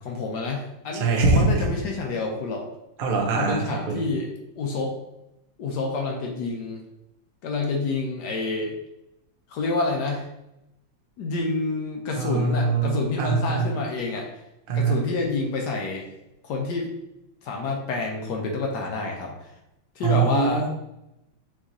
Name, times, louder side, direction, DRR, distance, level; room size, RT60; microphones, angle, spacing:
voice 1, 0.0-2.7 3.3-4.3 4.6-5.0 5.6-6.8 7.4-8.7 9.5-10.3 11.2-14.3 14.7-16.0 16.4-16.9 17.4-19.5 20.0-20.7, left 3 dB, 70° left, 0 dB, 1.2 m, -28 dB
voice 2, 0.9-1.7 3.0-4.0 12.2-13.8 14.7-15.0 20.0-20.7, right 4 dB, 55° right, 0 dB, 0.6 m, -23 dB
6.0 x 3.0 x 2.7 m, 0.87 s
omnidirectional pair, 2.2 m